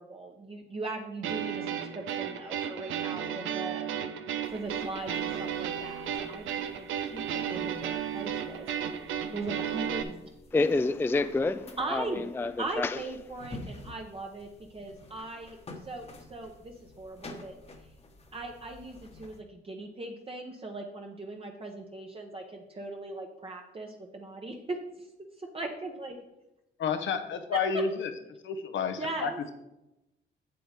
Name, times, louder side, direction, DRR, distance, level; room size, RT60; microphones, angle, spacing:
voice 1, 0.0-3.9 4.5-6.5 6.8-8.7 9.3-10.2 11.8-12.2 12.6-15.6 15.8-17.5 18.3-25.1 25.4-26.2 27.5-27.8 29.0-29.4, right 2 dB, 30° right, 1 dB, 1.0 m, -39 dB
sound 1, 1.2-10.0, right 9 dB, 80° right, 0.7 m, -34 dB
sound 2, 4.4-19.4, left 2 dB, 30° left, 1.2 m, -51 dB
voice 2, 10.5-13.0, left 3 dB, 10° left, 10 dB, 0.3 m, -28 dB
voice 3, 26.8-28.1 28.4-29.5, left 6 dB, 70° left, 7 dB, 0.9 m, -30 dB
7.8 x 7.7 x 3.5 m, 0.92 s
cardioid pair, 90°, 20 cm